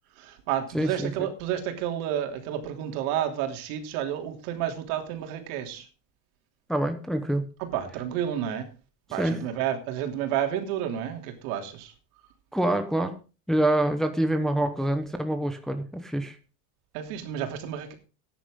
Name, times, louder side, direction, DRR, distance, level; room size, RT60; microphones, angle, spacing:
voice 1, 0.2-5.9 7.6-8.7 9.1-11.9 16.9-17.9, right 10 dB, 65° right, 3.1 m, -30 dB
voice 2, 0.7-1.1 6.7-7.4 9.2-9.4 12.5-13.1 13.5-16.4, right 1 dB, ahead, 0.9 m, -26 dB
14.0 x 10.0 x 3.8 m
supercardioid pair, 130°, 46 cm